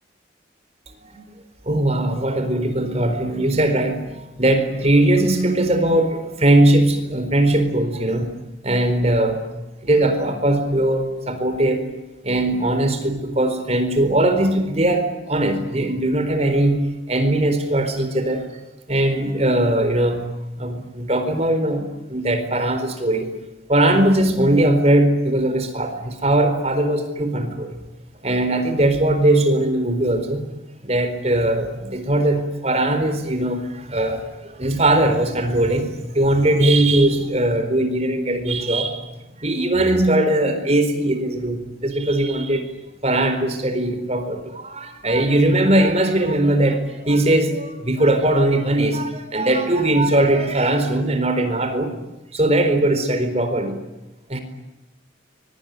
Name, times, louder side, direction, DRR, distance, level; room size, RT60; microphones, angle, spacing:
voice 1, 1.7-8.3 8.6-9.4 9.8-11.8 12.2-18.4 18.9-20.3 20.6-23.3 23.7-27.8 28.2-30.4 30.8-39.1 39.4-42.7 43.0-51.9 52.3-53.8 54.3-54.4, right 1 dB, 35° right, 8 dB, 4.3 m, -20 dB
24.5 x 23.5 x 9.3 m, 0.99 s
head